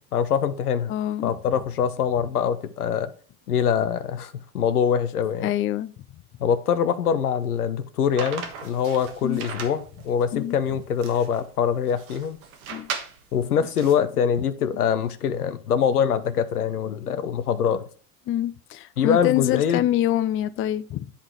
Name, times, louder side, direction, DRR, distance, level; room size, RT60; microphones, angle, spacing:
voice 1, 0.1-0.9 1.2-3.1 3.5-5.5 6.4-12.4 13.3-17.8 19.0-19.8, left 7 dB, 90° left, 0.7 m, -24 dB
voice 2, 0.9-1.3 5.4-5.9 9.2-9.4 10.3-10.5 12.7-12.9 18.3-21.1, left 12 dB, 30° left, 0.4 m, -25 dB
sound 1, 8.2-13.9, right 6 dB, 70° right, 1.5 m, -37 dB
10.0 x 3.9 x 4.5 m
hypercardioid pair, 70°, 44 cm